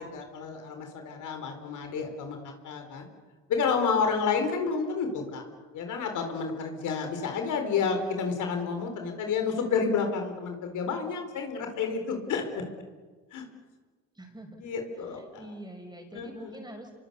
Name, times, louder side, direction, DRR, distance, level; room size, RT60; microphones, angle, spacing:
voice 1, 0.0-3.1 3.5-5.4 5.7-12.4 13.3-13.4 14.6-15.4 16.1-16.6, left 5 dB, 80° left, 5 dB, 4.3 m, -30 dB
voice 2, 14.1-14.6 15.0-16.9, right 1 dB, 15° right, 3 dB, 6.2 m, -45 dB
27.0 x 23.5 x 7.0 m, 1.4 s
cardioid pair, 90°, 30 cm